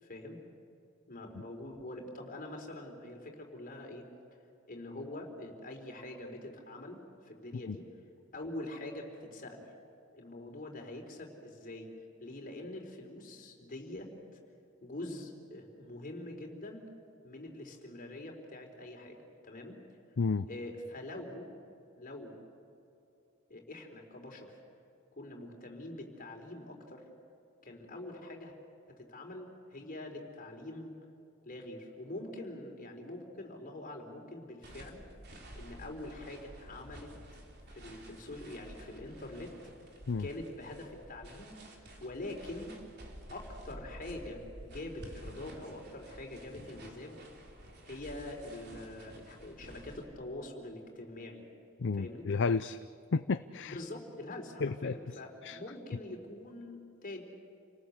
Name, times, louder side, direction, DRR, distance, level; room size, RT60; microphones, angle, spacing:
voice 1, 0.0-0.4 1.1-4.0 4.7-7.8 8.3-9.6 10.1-11.9 12.2-14.1 14.8-16.9 17.2-19.2 19.4-19.8 20.5-21.5 22.0-22.4 23.5-24.6 25.1-27.0 27.6-28.5 29.0-30.9 31.4-35.0 35.5-37.1 37.7-39.5 40.2-41.5 42.0-42.8 43.3-47.2 47.8-51.4 51.9-52.3 53.6-57.2, left 1 dB, 40° left, 2 dB, 4.0 m, -44 dB
voice 2, 20.2-20.5 40.1-40.3 51.8-52.8 53.1-53.8 54.6-54.9 55.4-55.6, left 4 dB, 60° left, 12 dB, 0.5 m, -31 dB
sound 1, 34.6-50.0, right 1 dB, 50° right, 3.7 m, -51 dB
29.5 x 19.0 x 8.2 m, 2.7 s
head